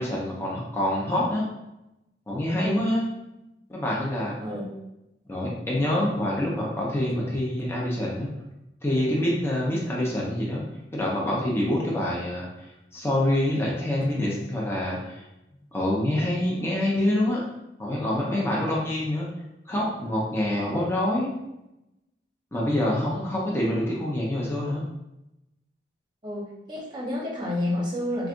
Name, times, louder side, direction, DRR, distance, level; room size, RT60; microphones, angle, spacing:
voice 1, 0.0-1.4 2.3-3.0 3.7-4.4 5.3-8.3 8.8-10.6 10.9-12.5 12.9-15.2 15.7-17.4 17.8-19.3 19.7-21.3 22.5-24.8, left 1 dB, 15° left, -4 dB, 0.7 m, -26 dB
voice 2, 2.6-2.9 4.4-4.7 26.2-28.3, left 1 dB, 25° right, -4 dB, 1.0 m, -30 dB
3.4 x 3.2 x 2.5 m, 0.90 s
head